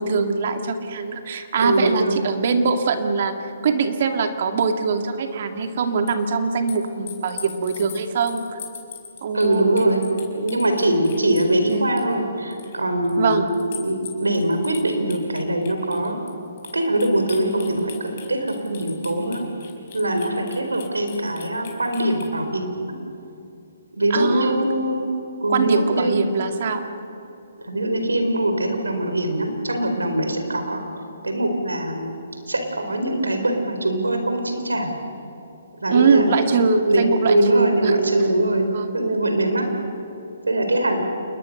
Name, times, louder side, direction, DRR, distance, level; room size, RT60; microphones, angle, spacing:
voice 1, 0.0-3.3 3.6-8.6 9.2-9.7 11.7-11.9 13.2-13.5 24.1-24.7 25.5-26.9 35.9-37.9 38.7-38.9, right 5 dB, 55° right, 6 dB, 2.3 m, -22 dB
voice 2, 1.6-2.2 9.3-10.0 10.3-13.4 13.7-16.2 16.7-19.4 19.9-22.7 23.9-25.1 25.4-26.3 27.6-30.8 31.2-32.1 32.5-34.9 35.8-36.3 36.8-38.7 38.9-39.7 40.5-41.0, right 1 dB, 90° right, 5 dB, 4.3 m, -22 dB
sound 1, 6.1-6.2 6.7-12.1 12.5-12.8 13.0-13.1 13.5-22.3, left 9 dB, 45° left, 5.2 m, -40 dB
28.5 x 21.0 x 6.7 m, 2.7 s
figure-of-eight pair, 135°, 0 cm